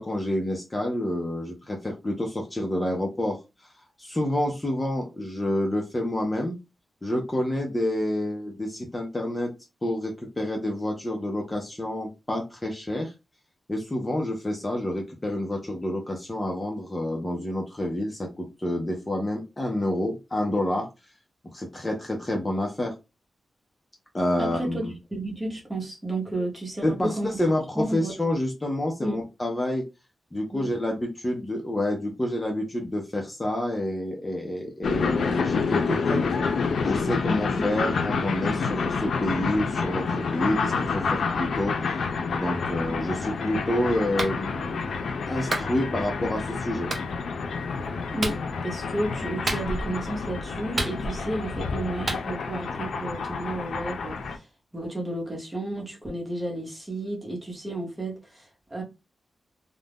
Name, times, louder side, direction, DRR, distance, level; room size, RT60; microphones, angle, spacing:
voice 1, 0.0-3.4 4.0-6.6 7.0-9.5 9.8-13.1 13.7-20.9 21.5-22.9 24.1-24.9 26.8-29.9 30.3-36.3 36.8-42.0 42.3-44.8 45.3-46.9, left 1 dB, 20° left, 0.5 m, -28 dB
voice 2, 24.4-27.4 27.7-28.1 29.0-29.2 30.5-30.7 37.6-37.7 48.1-54.5 54.7-58.8, right 1 dB, 15° right, 1.0 m, -32 dB
sound 1, 34.8-54.4, left 5 dB, 80° left, 0.5 m, -28 dB
Clapping, 44.2-44.4 45.5-45.7 46.9-47.1 48.2-48.4 49.5-49.9 50.8-51.3 52.1-52.2, right 2 dB, 40° right, 0.6 m, -29 dB
2.5 x 2.1 x 3.4 m
wide cardioid pair, 130°, 0 cm